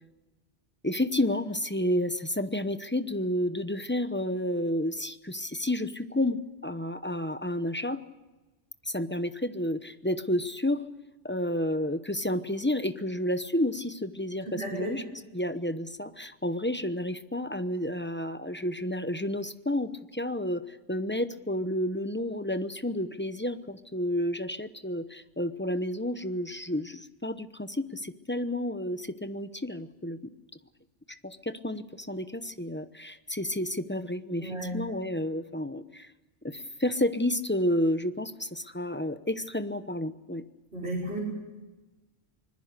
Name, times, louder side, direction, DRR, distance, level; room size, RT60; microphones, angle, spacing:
voice 1, 0.8-8.0 8.8-10.8 11.2-30.3 31.1-36.1 36.4-40.4, left 1 dB, 10° left, 11 dB, 0.8 m, -31 dB
voice 2, 14.4-14.9 34.4-34.8 40.7-41.2, right 1 dB, 65° right, -4 dB, 5.9 m, -33 dB
25.5 x 21.0 x 6.7 m, 1.1 s
omnidirectional pair, 1.2 m